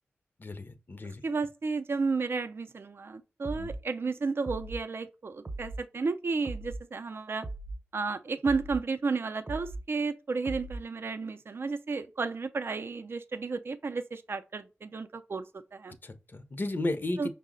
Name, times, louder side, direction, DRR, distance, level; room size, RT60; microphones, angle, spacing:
voice 1, 0.4-1.2 3.5-3.7 16.0-17.3, left 2 dB, 45° left, 0.6 m, -34 dB
voice 2, 1.2-7.5 7.9-15.4 15.7-16.0 17.2-17.3, right 4 dB, 55° right, 0.4 m, -32 dB
sound 1, 3.4-3.8 4.4-4.8 5.4-5.8 6.4-6.8 7.4-7.8 8.4-8.8 9.5-9.9 10.5-10.9, right 2 dB, 40° right, 0.7 m, -39 dB
5.4 x 2.0 x 3.7 m
cardioid pair, 55°, 5 cm